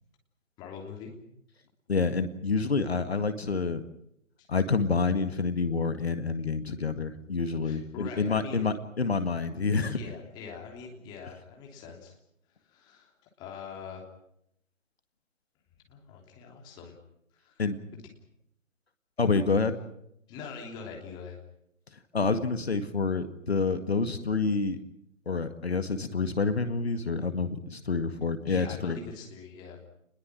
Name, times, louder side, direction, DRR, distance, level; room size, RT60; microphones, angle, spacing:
voice 1, 0.6-1.1 4.4-4.5 7.6-8.7 9.9-12.2 12.7-13.1 13.4-14.0 15.9-17.0 17.4-17.7 17.9-18.0 20.3-21.4 28.5-29.8, left 5 dB, 10° left, 1 dB, 3.1 m, -43 dB
voice 2, 1.9-3.8 4.5-10.0 17.6-17.8 19.2-19.8 22.1-24.8 25.3-29.0, left 4 dB, 50° left, 10 dB, 2.0 m, -28 dB
29.0 x 21.0 x 6.2 m, 0.75 s
figure-of-eight pair, 150°, 39 cm